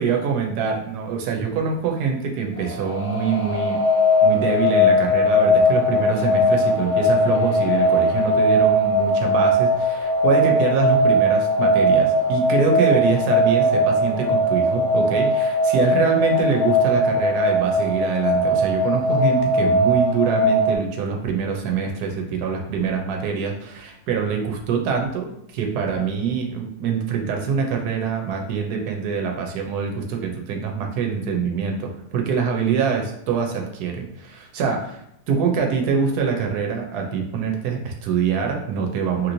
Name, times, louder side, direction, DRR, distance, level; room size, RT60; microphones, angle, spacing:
voice 1, 0.0-3.8 4.2-35.0 35.3-39.3, right 6 dB, 80° right, 2 dB, 1.2 m, -24 dB
sound 1, 2.6-20.8, left 1 dB, 80° left, 1.3 m, -19 dB
3.0 x 2.8 x 2.6 m, 0.79 s
omnidirectional pair, 1.7 m